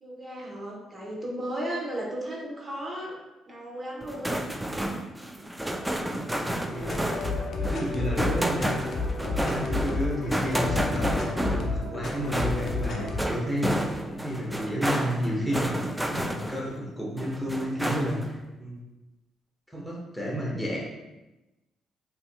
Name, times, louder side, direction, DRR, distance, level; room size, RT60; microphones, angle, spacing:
voice 1, 0.0-3.1 3.5-4.4, right 1 dB, 35° right, -3 dB, 0.9 m, -35 dB
sound 1, 4.0-16.8 17.2-18.4, right 1 dB, 5° right, 0.3 m, -31 dB
voice 2, 6.4-7.2 7.6-8.8 9.2-11.2 11.6-13.8 14.1-15.7 16.0-18.3 18.6-18.8 19.7-20.8, equal, 10° left, -4 dB, 1.0 m, -31 dB
sound 2, 6.7-13.2, left 3 dB, 55° left, 0.5 m, -31 dB
5.1 x 2.8 x 2.2 m, 1.0 s
cardioid pair, 90°, 0 cm